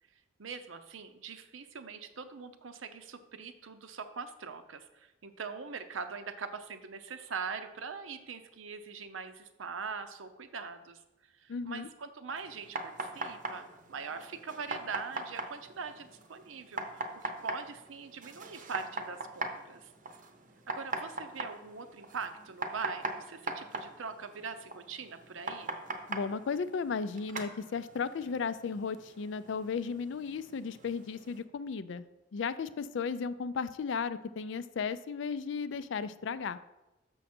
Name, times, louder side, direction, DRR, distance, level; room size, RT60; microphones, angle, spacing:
voice 1, 0.4-19.9 20.7-25.8, right 5 dB, 85° right, 9 dB, 0.7 m, -42 dB
voice 2, 11.5-11.9 26.1-32.0 32.3-36.6, left 5 dB, 65° left, 15 dB, 0.4 m, -35 dB
sound 1, 12.3-31.4, right 3 dB, 40° right, 0.7 m, -42 dB
6.4 x 6.2 x 4.3 m, 1.0 s
head